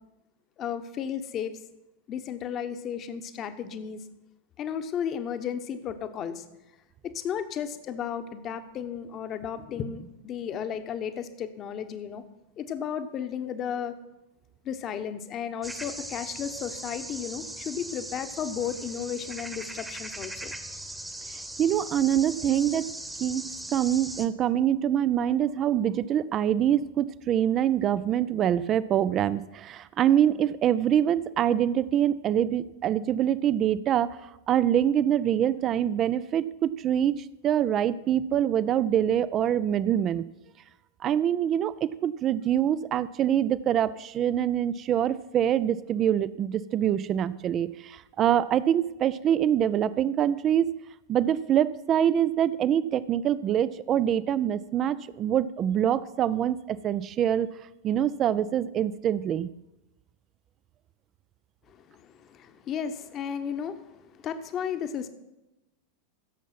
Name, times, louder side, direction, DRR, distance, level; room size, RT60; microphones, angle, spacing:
voice 1, 0.6-1.5 2.1-4.0 4.6-6.4 7.0-12.2 12.6-13.9 14.6-20.5 61.7-65.1, left 8 dB, 30° left, 9 dB, 1.0 m, -34 dB
sound 1, 15.6-24.3, right 1 dB, 5° right, 1.1 m, -39 dB
voice 2, 21.6-22.9 23.2-40.2 41.0-50.7 51.1-57.5 57.8-59.5, right 10 dB, 30° right, 17 dB, 0.4 m, -25 dB
16.0 x 7.2 x 5.9 m, 0.97 s
figure-of-eight pair, 90°, 0 cm